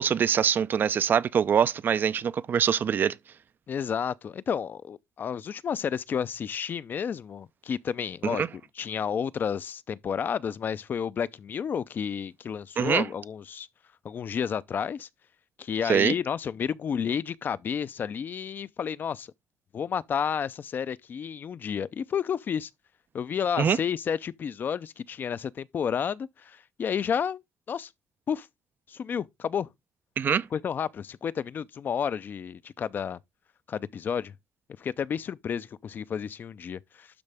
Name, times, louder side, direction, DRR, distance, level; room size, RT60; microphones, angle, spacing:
voice 1, 0.0-3.2 8.2-8.5 12.8-13.1 15.8-16.1 23.6-23.8 30.2-30.5, right 7 dB, 45° right, 0.4 m, -24 dB
voice 2, 3.7-8.5 8.8-13.7 14.0-15.1 15.6-19.3 19.7-22.7 23.1-27.4 27.7-27.9 28.3-28.5 28.9-29.7 30.5-33.2 33.7-34.3 34.8-37.1, left 7 dB, 40° left, 0.5 m, -31 dB
12.0 x 4.0 x 3.4 m
cardioid pair, 125°, 5 cm